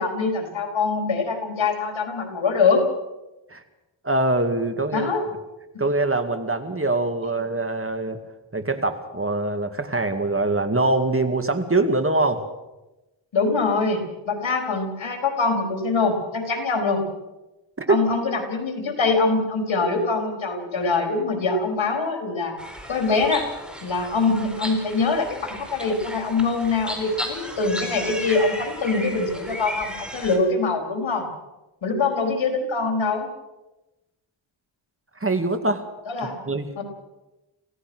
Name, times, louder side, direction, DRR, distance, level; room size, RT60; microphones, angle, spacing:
voice 1, 0.0-2.8 4.9-5.2 13.3-17.0 17.9-22.5 22.9-23.4 23.8-31.3 31.8-33.3 36.1-36.4 36.8-36.9, left 4 dB, 80° left, 3 dB, 4.5 m, -23 dB
voice 2, 4.0-5.1 5.8-8.2 8.5-12.4 17.8-18.0 35.2-35.8 36.5-36.7, right 2 dB, 30° right, 8 dB, 2.2 m, -23 dB
sound 1, 22.6-30.4, equal, ahead, 4.4 m, -35 dB
27.0 x 16.5 x 6.3 m, 1.0 s
wide cardioid pair, 75°, 46 cm